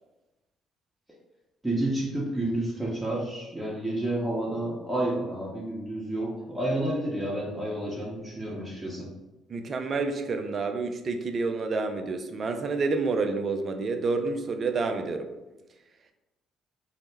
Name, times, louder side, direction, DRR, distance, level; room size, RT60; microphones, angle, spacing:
voice 1, 1.6-9.1, right 1 dB, 10° right, -6 dB, 0.7 m, -30 dB
voice 2, 9.5-15.3, right 3 dB, 45° right, 6 dB, 0.3 m, -29 dB
2.0 x 2.0 x 3.2 m, 1.1 s
hypercardioid pair, 50°, 0 cm